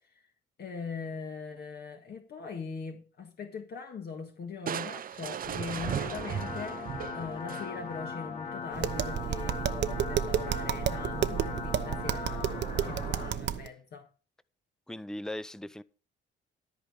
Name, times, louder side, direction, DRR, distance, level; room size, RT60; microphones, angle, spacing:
voice 1, 0.6-12.5 12.8-14.1, left 5 dB, 55° left, 1.7 m, -41 dB
Crushing, 4.7-8.0, right 9 dB, 45° right, 0.5 m, -36 dB
sound 1, 5.4-13.4, left 5 dB, 35° left, 1.9 m, -39 dB
Tap, 8.7-13.7, right 9 dB, 60° right, 0.9 m, -31 dB
voice 2, 13.2-13.6 14.9-15.8, left 1 dB, 5° left, 0.6 m, -40 dB
13.5 x 4.9 x 6.9 m
cardioid pair, 90°, 20 cm